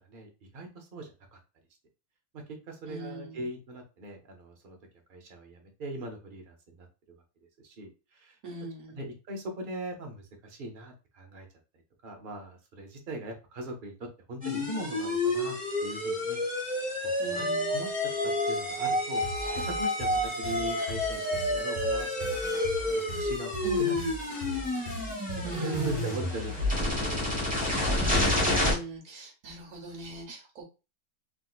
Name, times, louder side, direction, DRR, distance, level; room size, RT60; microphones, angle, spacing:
voice 1, 0.1-1.4 2.3-4.8 5.1-6.9 7.6-8.4 8.9-11.5 12.0-16.4 16.7-17.9 18.5-19.2 19.7-23.9 24.4-27.5, right 2 dB, 45° right, 2 dB, 0.8 m, -40 dB
voice 2, 2.8-3.5 8.4-9.0 17.2-17.7 23.6-24.1 25.4-26.2 27.9-30.7, right 3 dB, 65° right, 1 dB, 1.3 m, -40 dB
sound 1, 14.4-28.7, left 1 dB, 5° right, 0.9 m, -29 dB
sound 2, 19.2-26.2, equal, 40° left, 1.1 m, -40 dB
3.7 x 2.6 x 2.3 m, 0.30 s
omnidirectional pair, 1.5 m